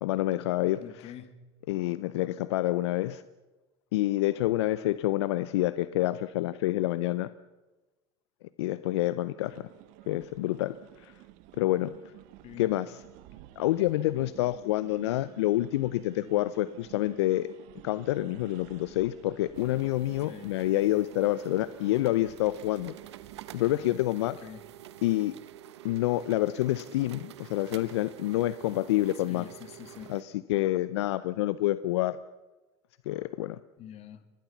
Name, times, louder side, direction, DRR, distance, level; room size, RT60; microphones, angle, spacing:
voice 1, 0.0-1.1 1.7-3.2 3.9-7.3 8.6-9.7 10.1-11.1 11.6-11.9 12.6-13.0 13.6-17.5 17.8-22.9 23.5-24.4 25.0-25.3 25.8-29.5 30.1-32.2 33.1-33.6, left 15 dB, 80° left, 16 dB, 0.6 m, -28 dB
voice 2, 0.8-1.4 12.4-12.8 20.3-20.5 24.4-24.6 29.2-30.2 33.8-34.2, left 10 dB, 50° left, 11 dB, 2.2 m, -45 dB
sound 1, 9.4-24.1, right 16 dB, 65° right, 1.2 m, -52 dB
sound 2, 19.5-30.2, right 13 dB, 85° right, 1.0 m, -49 dB
23.5 x 19.0 x 7.2 m, 1.1 s
hypercardioid pair, 95°, 14 cm